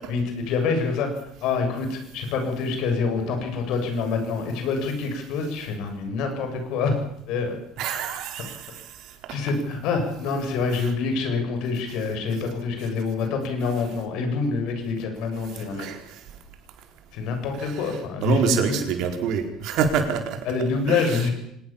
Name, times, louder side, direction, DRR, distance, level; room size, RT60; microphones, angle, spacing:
voice 1, 0.1-7.0 7.3-7.6 9.3-15.9 17.1-18.8 20.5-21.3, left 4 dB, 70° left, 5 dB, 7.3 m, -26 dB
voice 2, 7.8-9.4 10.8-10.9 15.7-16.2 17.6-17.7 18.2-20.4 20.9-21.1, right 7 dB, 65° right, 5 dB, 4.6 m, -27 dB
25.0 x 19.0 x 7.4 m, 0.76 s
supercardioid pair, 80°, 0 cm